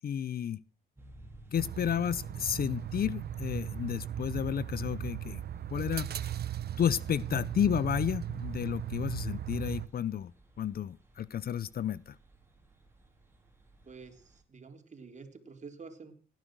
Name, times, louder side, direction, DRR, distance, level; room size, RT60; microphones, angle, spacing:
voice 1, 0.0-0.6 1.5-5.4 5.7-6.1 6.8-10.3 10.6-12.1, left 9 dB, 50° left, 21 dB, 0.7 m, -32 dB
sound 1, 1.0-14.4, right 1 dB, 10° right, 4.6 m, -56 dB
sound 2, 1.5-9.9, right 11 dB, 55° right, 1.1 m, -37 dB
voice 2, 13.9-16.1, right 4 dB, 35° right, 6 dB, 3.7 m, -49 dB
17.5 x 10.5 x 6.2 m, 0.39 s
cardioid pair, 90°, 20 cm